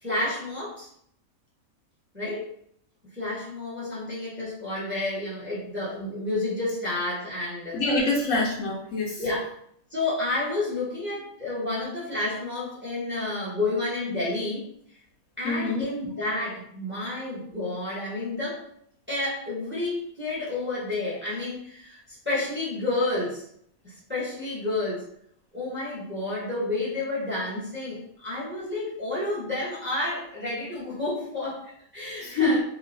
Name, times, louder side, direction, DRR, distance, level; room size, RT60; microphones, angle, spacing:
voice 1, 0.0-0.9 2.1-2.5 3.1-7.8 9.2-9.5 9.9-14.7 15.4-18.6 19.1-23.4 23.8-25.0 25.5-32.6, left 2 dB, 10° right, -8 dB, 0.9 m, -30 dB
voice 2, 7.7-9.2 15.4-15.9 32.2-32.6, left 2 dB, 70° left, -2 dB, 0.9 m, -25 dB
2.9 x 2.5 x 2.6 m, 0.67 s
omnidirectional pair, 1.5 m